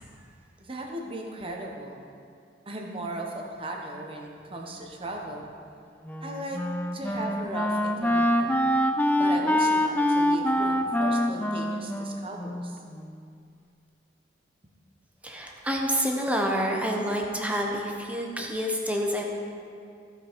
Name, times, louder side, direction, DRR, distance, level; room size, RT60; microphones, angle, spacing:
voice 1, 0.6-2.0 2.7-5.5 6.2-6.6 6.9-8.7 9.1-12.8, right 1 dB, 30° right, 1 dB, 1.1 m, -37 dB
Wind instrument woodwind instrument, 6.0-13.2, left 1 dB, 10° left, 0.3 m, -25 dB
voice 2, 15.2-19.2, equal, 10° right, 0 dB, 0.9 m, -28 dB
15.0 x 5.4 x 4.6 m, 2.4 s
head